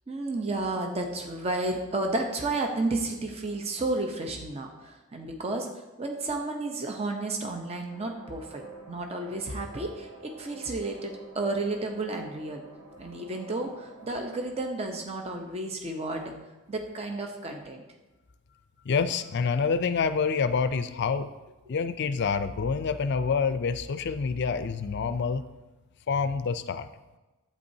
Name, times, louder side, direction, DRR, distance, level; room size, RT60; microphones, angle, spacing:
voice 1, 0.1-5.7 6.0-12.6 13.0-16.3 16.7-17.9, right 2 dB, 30° right, 3 dB, 0.7 m, -32 dB
sound 1, 7.9-14.4, right 2 dB, 65° right, 1.7 m, -49 dB
voice 2, 18.9-21.3 21.7-25.4 26.1-26.9, left 5 dB, 50° left, 12 dB, 0.4 m, -27 dB
11.5 x 8.5 x 2.7 m, 1.1 s
head